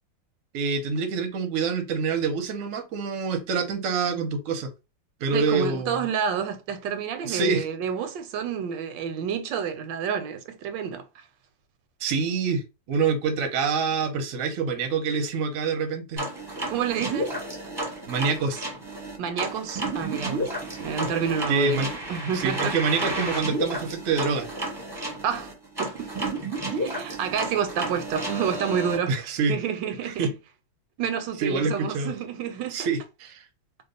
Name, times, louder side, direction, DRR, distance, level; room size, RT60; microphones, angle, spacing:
voice 1, 0.5-4.7 5.2-6.0 7.2-7.7 12.0-16.3 18.1-18.7 21.5-21.9 22.3-24.5 29.1-29.6 30.0-30.3 31.4-32.1 32.7-33.4, right 4 dB, 60° right, 0.9 m, -26 dB
voice 2, 5.3-11.0 16.7-17.4 19.2-20.5 20.8-22.7 25.2-25.5 25.8-26.3 26.7-29.1 29.5-30.3 31.0-32.9, right 7 dB, 80° right, 1.3 m, -29 dB
sound 1, 16.2-29.0, right 1 dB, 20° right, 0.8 m, -32 dB
2.9 x 2.3 x 3.9 m
omnidirectional pair, 2.0 m